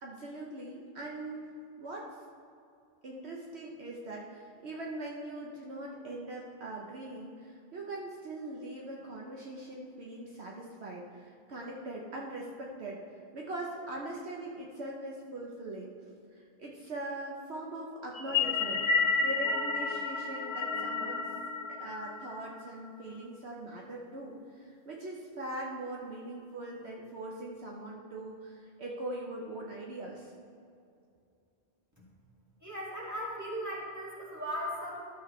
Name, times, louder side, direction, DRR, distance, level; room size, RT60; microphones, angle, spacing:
voice 1, 0.0-2.2 3.0-13.0 13.3-15.9 16.3-18.9 19.2-21.3 21.8-30.3, right 1 dB, 65° right, -2 dB, 1.2 m, -41 dB
sound 1, 18.2-22.7, left 4 dB, 65° left, 1.0 m, -31 dB
voice 2, 32.6-35.0, equal, 15° right, -6 dB, 2.1 m, -37 dB
13.0 x 7.2 x 3.2 m, 2.5 s
omnidirectional pair, 1.2 m